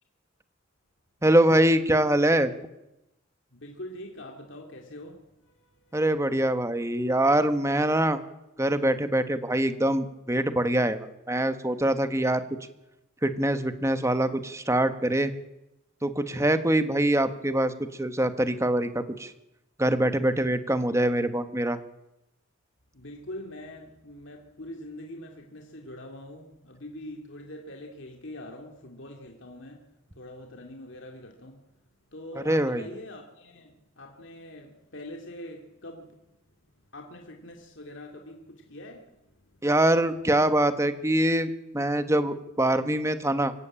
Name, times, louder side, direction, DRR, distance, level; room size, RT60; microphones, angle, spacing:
voice 1, 1.2-2.5 5.9-8.2 8.6-12.4 13.2-15.3 16.0-19.3 19.8-21.8 32.4-32.8 39.6-43.5, right 1 dB, 15° right, 10 dB, 1.3 m, -24 dB
voice 2, 3.5-6.0 22.9-31.7 32.1-36.6 36.9-39.7, left 1 dB, 60° left, 2 dB, 2.4 m, -44 dB
24.5 x 16.0 x 8.8 m, 0.92 s
head